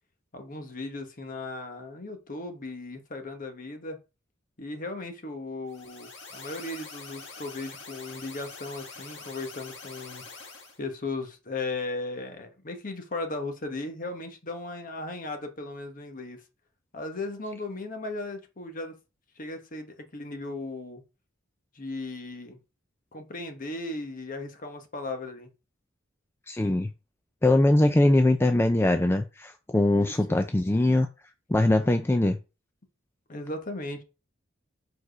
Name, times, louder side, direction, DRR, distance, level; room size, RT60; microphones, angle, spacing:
voice 1, 0.3-4.0 4.6-10.2 10.8-16.4 16.9-19.0 19.4-21.0 21.7-22.6 23.1-25.5 29.9-30.2 33.3-34.0, left 2 dB, 45° left, 1.2 m, -36 dB
sound 1, 5.7-10.8, left 4 dB, 65° left, 1.7 m, -44 dB
voice 2, 26.5-26.9 27.4-31.1 31.5-32.4, left 1 dB, 10° left, 0.4 m, -22 dB
4.9 x 4.6 x 5.0 m
head